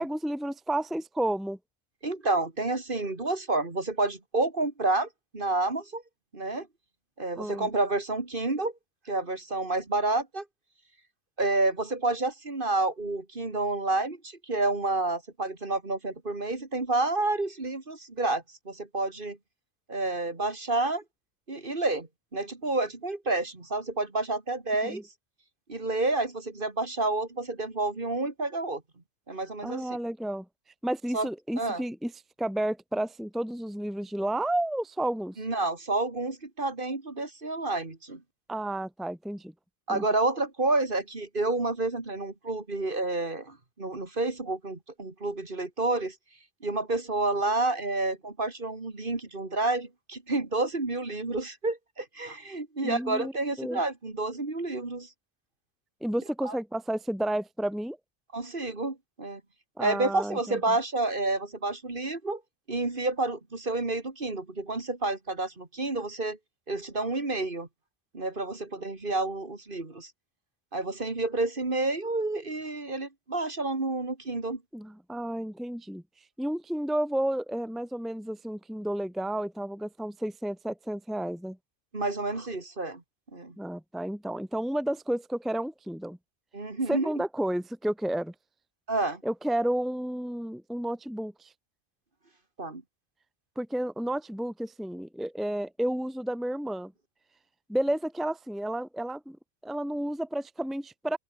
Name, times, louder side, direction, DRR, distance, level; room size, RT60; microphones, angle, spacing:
voice 1, 0.0-1.6 7.3-7.7 24.8-25.0 29.6-30.4 30.8-32.1 32.4-35.4 38.5-39.5 39.9-40.0 52.8-53.3 53.6-53.8 56.0-58.0 59.8-60.8 74.7-76.0 76.4-81.6 83.6-86.2 86.9-88.3 89.2-91.5 93.5-96.9 97.7-99.4 99.6-101.2, right 1 dB, ahead, 1.5 m, -31 dB
voice 2, 2.0-6.0 6.3-6.7 7.2-8.7 9.1-10.4 11.4-19.4 19.9-21.0 21.5-25.1 25.7-28.8 29.3-29.9 31.1-31.3 31.6-31.8 35.4-38.2 39.9-46.1 46.6-55.1 56.4-56.6 58.3-59.4 59.8-62.4 62.7-66.4 66.7-67.7 68.1-70.1 70.7-74.6 81.9-83.0 83.3-83.5 86.5-87.1 88.9-89.2 92.6-92.8, right 2 dB, 40° right, 2.7 m, -29 dB
open air
omnidirectional pair, 1.4 m